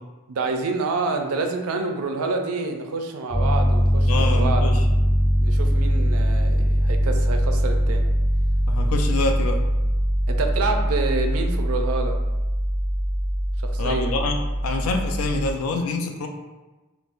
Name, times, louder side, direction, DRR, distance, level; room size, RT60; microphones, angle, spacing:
voice 1, 0.3-4.6 5.4-8.1 10.3-12.2 13.6-14.1, right 3 dB, 85° right, 4 dB, 0.4 m, -27 dB
Piano, 3.3-15.5, equal, 45° left, 0.9 m, -21 dB
voice 2, 4.1-4.8 8.7-9.6 13.8-14.4 14.6-16.3, left 3 dB, 80° left, 4 dB, 0.4 m, -26 dB
4.0 x 2.1 x 2.5 m, 1.2 s
head